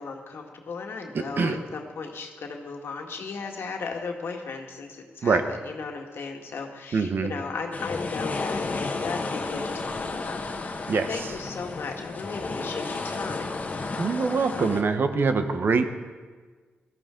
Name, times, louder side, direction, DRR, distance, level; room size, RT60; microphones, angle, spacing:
voice 1, 0.0-10.4 11.1-13.5, left 4 dB, 70° left, 2 dB, 1.8 m, -36 dB
voice 2, 1.1-1.6 5.2-5.4 6.9-7.3 10.9-11.1 14.0-15.9, right 4 dB, 55° right, 8 dB, 1.1 m, -24 dB
sound 1, 7.7-14.8, left 3 dB, 40° left, 1.3 m, -32 dB
18.0 x 13.5 x 3.8 m, 1.5 s
cardioid pair, 90°, 4 cm